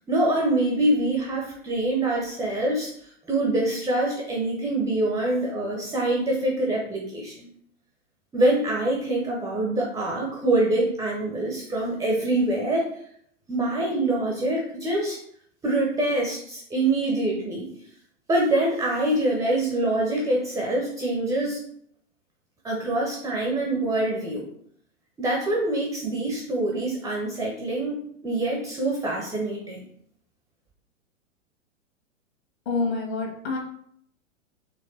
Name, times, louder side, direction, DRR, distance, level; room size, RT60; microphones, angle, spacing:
voice 1, 0.1-2.9 3.3-7.5 8.3-12.9 13.5-15.2 15.6-17.7 18.3-21.6 22.6-24.4 25.2-28.0 28.2-29.8, right 1 dB, 10° right, -2 dB, 0.6 m, -25 dB
voice 2, 32.7-33.6, left 3 dB, 55° left, 0 dB, 1.8 m, -27 dB
4.4 x 3.2 x 3.2 m, 0.66 s
figure-of-eight pair, 105°, 39 cm